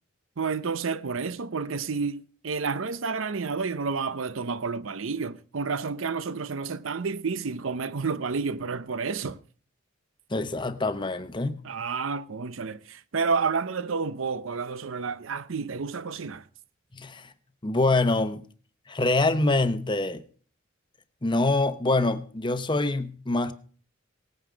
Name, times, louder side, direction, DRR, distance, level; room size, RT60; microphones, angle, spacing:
voice 1, 0.4-9.4 11.6-16.4, right 5 dB, 75° right, 0.7 m, -30 dB
voice 2, 10.3-11.6 16.9-17.3 17.6-18.4 18.9-20.2 21.2-23.5, left 2 dB, 25° left, 0.9 m, -25 dB
18.0 x 9.2 x 5.1 m
head